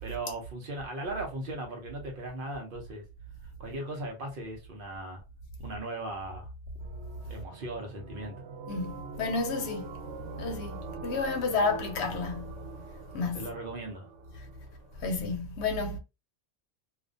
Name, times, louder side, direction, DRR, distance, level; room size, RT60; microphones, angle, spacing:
voice 1, 0.0-3.0 3.6-5.2 5.6-6.5 7.3-8.4 13.3-14.1, right 2 dB, 55° right, 0.7 m, -38 dB
sound 1, 6.8-15.1, right 5 dB, 85° right, 0.9 m, -44 dB
voice 2, 8.7-9.9 10.4-12.6 13.1-13.5 15.0-16.0, left 4 dB, 70° left, 0.8 m, -31 dB
2.4 x 2.1 x 2.5 m
omnidirectional pair, 1.2 m